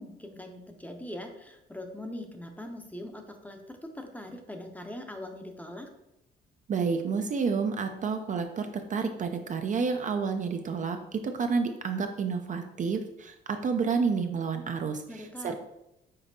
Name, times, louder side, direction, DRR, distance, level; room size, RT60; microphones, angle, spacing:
voice 1, 0.0-5.9 15.1-15.5, left 1 dB, 10° left, 5 dB, 0.6 m, -41 dB
voice 2, 6.7-15.5, right 5 dB, 40° right, 6 dB, 0.4 m, -30 dB
5.2 x 3.8 x 2.6 m, 0.86 s
cardioid pair, 90°, 20 cm